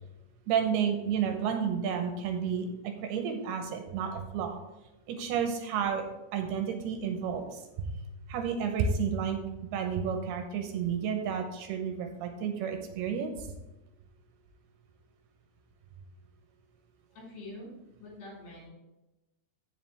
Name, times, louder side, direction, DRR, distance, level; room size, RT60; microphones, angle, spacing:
voice 1, 0.5-4.6 5.1-6.0 6.3-7.9 8.3-13.3, right 7 dB, 80° right, 5 dB, 2.7 m, -31 dB
voice 2, 17.1-17.7 18.0-18.7, left 1 dB, 75° left, -5 dB, 5.5 m, -45 dB
14.5 x 5.0 x 3.3 m, 1.0 s
omnidirectional pair, 4.8 m